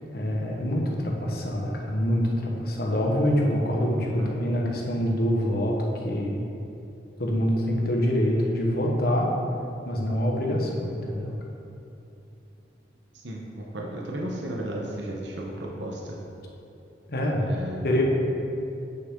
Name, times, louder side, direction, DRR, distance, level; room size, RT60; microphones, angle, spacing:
voice 1, 0.1-5.8 6.0-6.4 7.2-9.3 9.8-11.3 17.1-17.5 17.8-18.0, equal, 60° left, -1 dB, 1.3 m, -25 dB
voice 2, 4.1-4.4 13.2-16.2 17.5-18.0, right 1 dB, 85° right, -2 dB, 1.0 m, -34 dB
8.9 x 6.8 x 3.8 m, 2.8 s
head